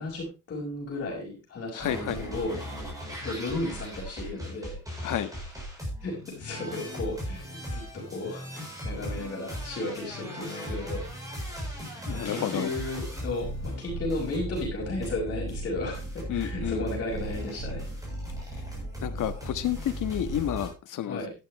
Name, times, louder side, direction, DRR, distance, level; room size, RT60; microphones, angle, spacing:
voice 1, 0.0-2.6 3.2-4.8 6.0-11.0 12.1-17.9 21.0-21.3, left 2 dB, 40° left, -5 dB, 5.3 m, -34 dB
voice 2, 1.7-2.3 5.0-5.3 12.1-12.7 16.3-16.9 19.0-21.2, left 11 dB, 70° left, 10 dB, 1.4 m, -30 dB
sound 1, 1.8-20.7, equal, 10° right, 7.2 m, -37 dB
12.5 x 11.5 x 3.1 m, 0.28 s
cardioid pair, 160°, 32 cm